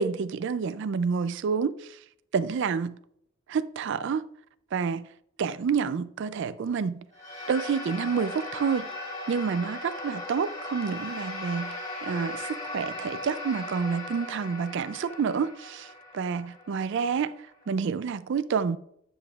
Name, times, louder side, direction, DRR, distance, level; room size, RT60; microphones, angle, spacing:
voice 1, 0.0-2.0 2.3-3.0 3.5-4.2 4.7-5.1 5.4-7.0 7.5-8.9 9.3-17.4 17.7-18.8, right 6 dB, 60° right, 0.4 m, -29 dB
sound 1, 7.1-17.7, left 2 dB, 35° left, 3.1 m, -38 dB
9.6 x 6.7 x 2.4 m
head